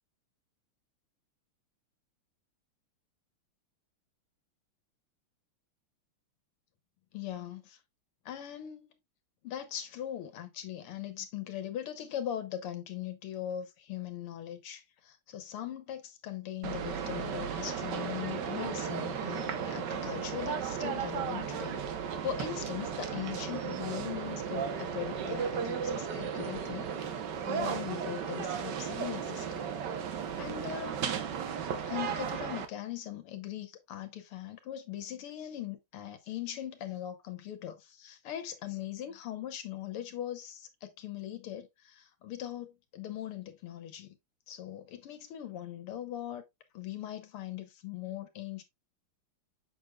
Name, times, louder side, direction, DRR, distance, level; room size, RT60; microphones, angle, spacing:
voice 1, 7.1-7.8 8.3-8.9 9.4-21.8 22.2-26.9 27.5-29.7 30.4-31.0 31.8-44.2 44.5-46.4 46.7-48.6, left 11 dB, 85° left, 2.0 m, -40 dB
sound 1, 16.6-32.7, right 7 dB, 60° right, 1.4 m, -35 dB
7.2 x 6.3 x 2.3 m
omnidirectional pair, 2.4 m